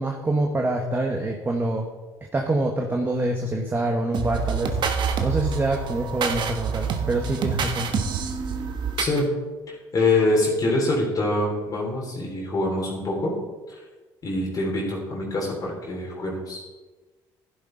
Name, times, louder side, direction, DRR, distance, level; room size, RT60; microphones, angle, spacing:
voice 1, 0.0-1.9 2.3-7.9, right 2 dB, 25° right, 2 dB, 1.2 m, -26 dB
sound 1, 4.1-9.2, right 6 dB, 55° right, 1.2 m, -27 dB
voice 2, 9.0-9.3 9.7-13.3 13.7-13.8 14.2-16.6, left 2 dB, 40° left, -3 dB, 3.3 m, -25 dB
12.0 x 11.0 x 3.9 m, 1.3 s
supercardioid pair, 85°, 9 cm